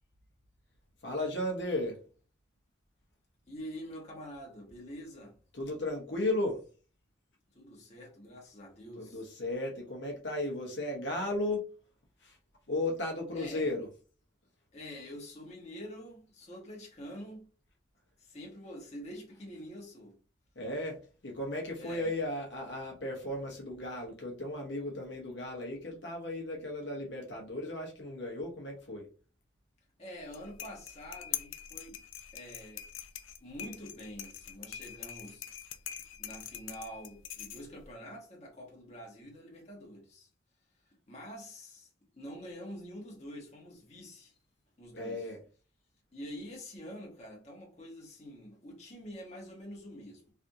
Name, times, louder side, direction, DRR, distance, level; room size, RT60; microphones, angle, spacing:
voice 1, 1.0-2.0 5.5-6.6 9.0-11.6 12.2-12.4 12.7-13.9 20.6-21.0 21.2-29.1 44.9-45.4, left 1 dB, 70° left, 0.9 m, -35 dB
voice 2, 3.5-5.4 7.5-9.2 13.3-13.7 14.7-17.5 18.2-20.2 21.8-22.1 30.0-32.0 32.3-32.8 33.4-35.5 36.2-40.3 40.8-44.3 44.8-45.2 46.1-50.3, equal, 35° left, 1.1 m, -46 dB
sound 1, 30.2-37.9, left 10 dB, 85° left, 0.4 m, -44 dB
3.3 x 2.5 x 2.7 m
head